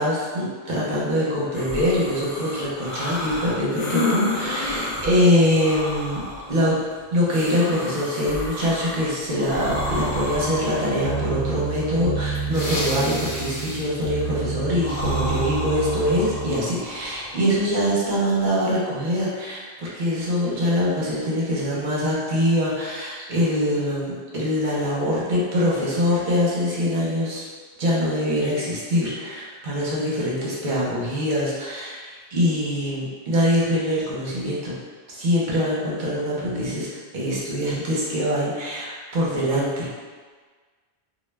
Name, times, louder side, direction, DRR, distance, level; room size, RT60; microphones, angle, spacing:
voice 1, 0.0-6.2 6.5-6.8 7.1-27.5 27.8-34.7 35.1-36.9 37.1-39.9, equal, 55° right, -6 dB, 0.8 m, -23 dB
sound 1, 1.5-18.5, left 1 dB, 55° left, 0.6 m, -32 dB
sound 2, 9.7-16.5, right 4 dB, 80° left, 1.0 m, -29 dB
2.3 x 2.1 x 3.2 m, 1.5 s
omnidirectional pair, 1.1 m